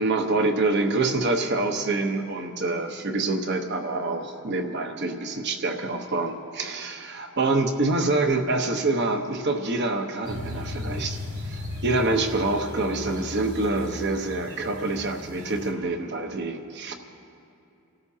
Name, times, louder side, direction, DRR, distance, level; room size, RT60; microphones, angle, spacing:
voice 1, 0.0-11.2 11.5-17.0, right 2 dB, 50° right, 5 dB, 1.0 m, -26 dB
sound 1, 10.2-15.7, left 1 dB, 80° right, 2.6 m, -36 dB
28.5 x 13.0 x 2.8 m, 2.8 s
head